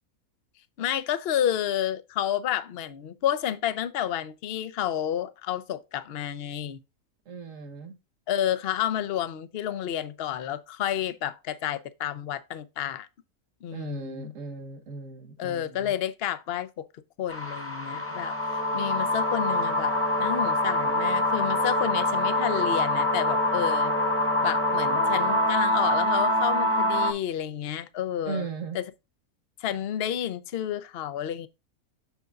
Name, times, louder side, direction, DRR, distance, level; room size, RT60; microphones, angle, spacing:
voice 1, 0.8-6.8 8.3-13.1 13.6-14.3 15.4-16.9 17.2-23.9 24.4-28.5 28.7-28.8 29.6-31.5, left 10 dB, 50° left, 0.8 m, -30 dB
voice 2, 7.3-7.9 13.7-15.9 28.2-28.8, right 4 dB, 60° right, 1.7 m, -37 dB
sound 1, 17.3-27.1, left 1 dB, 10° left, 1.0 m, -25 dB
7.1 x 6.8 x 2.4 m
omnidirectional pair, 1.5 m